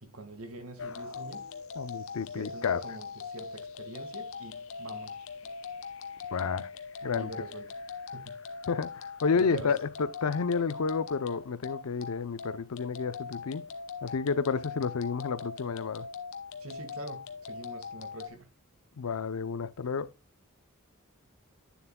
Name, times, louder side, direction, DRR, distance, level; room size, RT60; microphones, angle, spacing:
voice 1, 0.0-1.5 2.3-5.3 7.1-7.7 8.1-8.4 9.3-9.8 16.6-18.5, right 2 dB, 75° right, 1.7 m, -44 dB
sound 1, 0.8-18.3, left 5 dB, 70° left, 0.9 m, -41 dB
voice 2, 1.8-2.8 6.3-6.7 7.0-7.3 8.7-13.6 14.0-16.1 19.0-20.1, left 5 dB, 90° left, 0.6 m, -30 dB
9.3 x 7.1 x 2.2 m
head